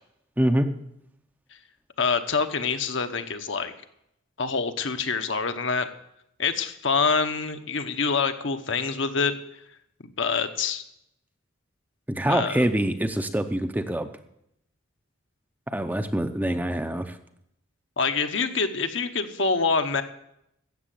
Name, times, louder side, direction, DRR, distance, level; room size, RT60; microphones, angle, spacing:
voice 1, 0.4-0.7 12.1-14.1 15.7-17.2, right 1 dB, 10° right, 8 dB, 0.6 m, -25 dB
voice 2, 2.0-3.7 4.4-5.9 6.4-9.4 10.2-10.8 12.3-12.6 18.0-20.0, left 5 dB, 60° left, 8 dB, 1.0 m, -26 dB
13.5 x 8.2 x 7.6 m, 0.79 s
head